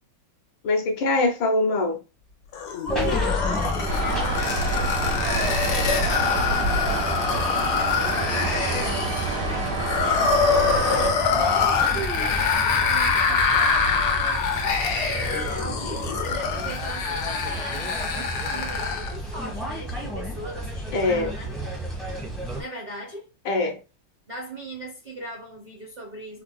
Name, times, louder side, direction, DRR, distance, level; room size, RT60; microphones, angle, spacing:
voice 1, 0.6-2.0 20.9-21.3 23.4-23.8, left 2 dB, 70° left, 1.5 m, -23 dB
sound 1, 2.5-19.2, left 5 dB, 90° left, 1.7 m, -25 dB
voice 2, 2.7-14.4 15.2-21.5 22.6-23.3 24.3-26.4, right 1 dB, 70° right, 0.4 m, -38 dB
sound 2, 2.9-22.6, equal, ahead, 0.6 m, -32 dB
sound 3, 3.9-11.1, right 2 dB, 85° right, 2.2 m, -28 dB
4.8 x 2.4 x 2.2 m
omnidirectional pair, 2.3 m